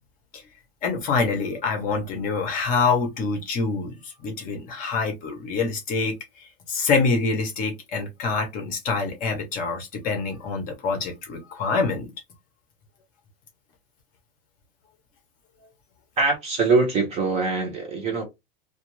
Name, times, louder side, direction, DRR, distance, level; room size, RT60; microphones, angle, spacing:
voice 1, 0.8-12.1, left 4 dB, 25° left, 0.7 m, -26 dB
voice 2, 16.2-18.2, right 4 dB, 20° right, 0.7 m, -23 dB
2.4 x 2.3 x 3.0 m
supercardioid pair, 160°, 30 cm